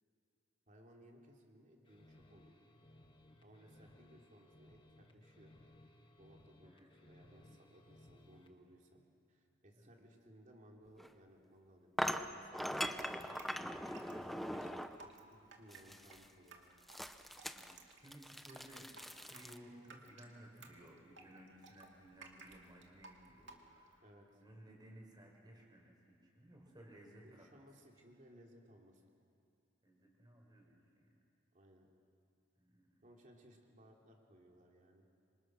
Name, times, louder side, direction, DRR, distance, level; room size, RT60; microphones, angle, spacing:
voice 1, 0.7-2.6 3.4-5.5 6.2-9.0 9.3-11.9 12.2-13.4 14.0-16.6 24.0-24.4 27.2-29.0 31.5-31.9 33.0-35.1, equal, 40° right, 0 dB, 3.3 m, -62 dB
sound 1, 1.8-8.6, left 1 dB, 25° left, 1.6 m, -63 dB
voice 2, 6.6-6.9 9.8-9.9 17.5-24.0 24.4-27.7 29.8-31.1 32.6-33.1 33.4-33.5, right 1 dB, 20° right, -1 dB, 5.3 m, -59 dB
sound 2, 11.0-11.1 12.0-15.1 15.7-16.3 16.9-19.6, equal, ahead, 0.7 m, -41 dB
Drip, 13.0-24.0, right 4 dB, 65° right, 2.4 m, -59 dB
26.5 x 26.0 x 6.4 m, 2.6 s
head